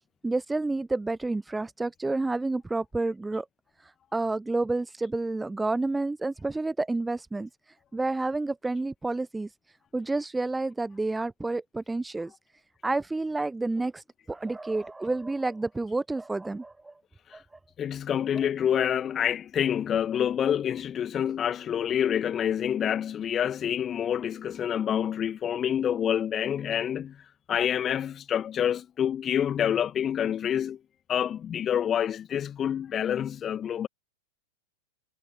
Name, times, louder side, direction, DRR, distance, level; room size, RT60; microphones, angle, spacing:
voice 1, 0.2-3.5 3.8-9.5 9.9-12.4 12.8-16.9 17.3-17.4 18.3-18.4, right 2 dB, 10° right, 0.4 m, -30 dB
voice 2, 17.8-27.1 27.5-30.8 31.1-33.9, left 9 dB, 25° left, 1.6 m, -27 dB
figure-of-eight pair, 90°, 0 cm